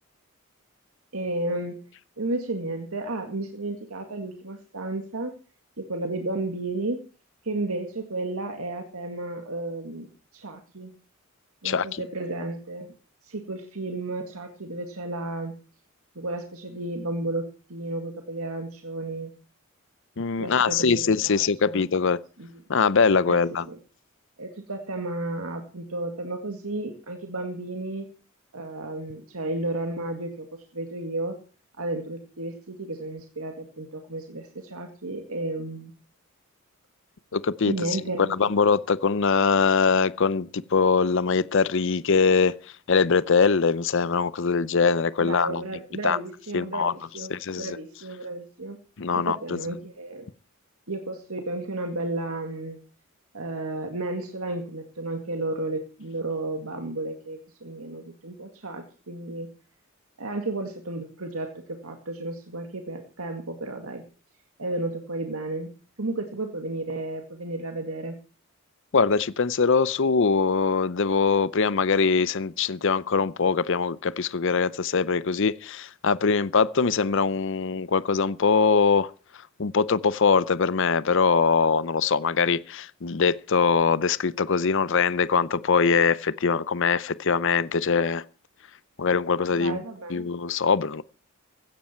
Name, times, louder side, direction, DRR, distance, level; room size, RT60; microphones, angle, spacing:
voice 1, 1.1-1.8 2.2-5.3 5.8-7.0 7.4-10.9 11.6-12.9 13.2-15.5 16.2-19.3 20.4-21.9 22.4-22.5 23.3-23.8 24.4-28.1 28.5-31.4 31.8-35.9 37.6-38.5 45.2-48.8 49.1-50.2 50.9-52.8 53.3-59.5 60.2-64.0 64.6-65.7 66.0-68.1 89.6-90.3, right 2 dB, 85° right, 2.1 m, -33 dB
voice 2, 11.6-12.0 20.2-22.2 22.7-23.6 37.3-42.5 42.9-45.6 46.0-46.2 46.5-46.9 47.3-47.8 49.0-49.6 68.9-79.1 79.6-88.2 89.0-89.8 90.1-91.0, left 5 dB, 60° left, 0.6 m, -22 dB
16.0 x 13.0 x 4.4 m
head